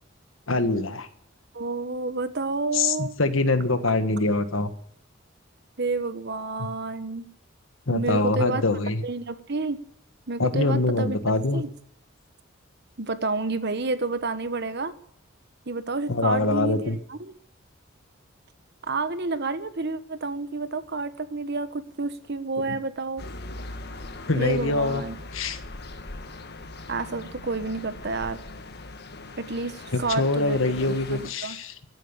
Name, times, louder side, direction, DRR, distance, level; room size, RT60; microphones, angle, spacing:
voice 1, 0.5-1.1 2.7-4.7 6.6-6.7 7.9-9.0 10.4-11.6 16.1-17.0 24.3-25.0 25.3-25.6 29.9-31.7, left 2 dB, 80° left, 10 dB, 1.5 m, -24 dB
voice 2, 1.5-3.1 5.8-7.3 7.9-8.6 9.0-9.8 10.3-11.2 11.5-11.7 13.0-14.9 15.7-17.3 18.8-23.2 24.3-25.1 26.9-28.4 29.4-30.6 31.1-31.6, right 3 dB, 55° right, 12 dB, 1.3 m, -29 dB
sound 1, 23.2-31.3, left 2 dB, 55° left, 1.6 m, -40 dB
15.0 x 9.3 x 9.7 m, 0.67 s
head